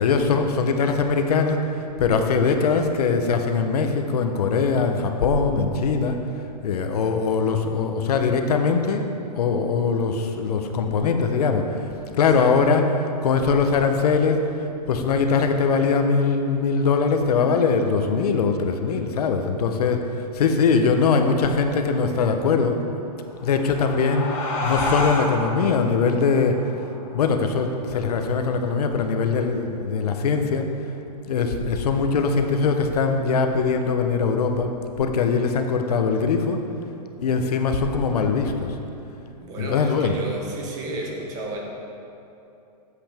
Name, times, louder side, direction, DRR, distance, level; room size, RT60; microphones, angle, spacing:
voice 1, 0.0-1.6 2.0-6.2 6.6-9.1 9.4-11.9 12.1-12.9 13.2-14.5 14.9-22.8 23.4-26.6 27.1-30.7 31.3-34.7 35.0-36.6 37.2-38.8 39.6-40.1, left 5 dB, 65° left, 5 dB, 0.8 m, -21 dB
sound 1, 23.3-28.4, left 2 dB, 45° left, 1.5 m, -30 dB
voice 2, 39.4-41.6, right 2 dB, 15° right, -1 dB, 0.6 m, -33 dB
8.8 x 7.8 x 3.5 m, 2.7 s
hypercardioid pair, 170°, 21 cm